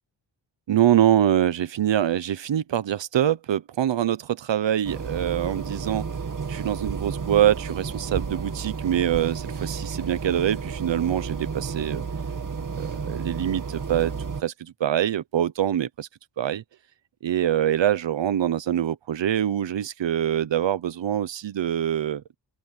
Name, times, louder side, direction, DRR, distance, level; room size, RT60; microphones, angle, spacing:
voice 1, 0.7-6.1 6.5-12.0 12.8-16.1 16.4-16.6 17.2-22.2, right 10 dB, 80° right, 0.9 m, -24 dB
sound 1, 4.8-14.4, right 5 dB, 45° right, 2.2 m, -32 dB
open air
wide cardioid pair, 110°, 43 cm